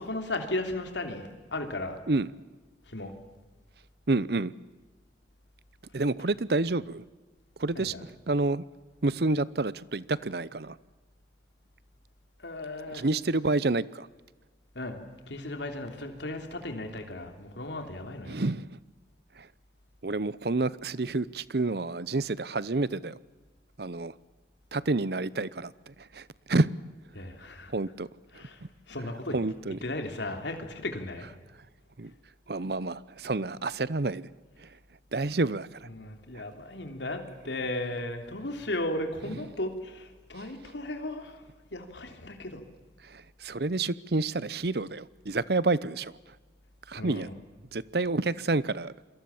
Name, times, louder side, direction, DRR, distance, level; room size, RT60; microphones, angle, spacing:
voice 1, 0.0-2.0 2.9-3.1 7.7-8.0 12.4-13.0 14.7-15.0 15.3-18.4 27.1-27.7 28.3-28.6 28.9-29.4 29.8-31.3 35.9-41.4 41.7-42.6 47.0-47.3, left 1 dB, 75° left, 3.2 m, -35 dB
voice 2, 4.1-4.5 5.9-7.0 7.6-8.6 9.0-10.8 12.9-14.1 18.3-18.8 19.4-19.5 20.0-23.2 23.8-24.1 24.7-26.8 27.7-28.1 28.6-28.7 29.3-29.8 32.0-32.1 32.5-34.3 34.6-34.7 35.1-35.9 36.3-36.4 43.0-46.1 46.9-47.3 47.7-48.9, right 2 dB, 60° right, 0.8 m, -29 dB
28.0 x 22.5 x 7.2 m
head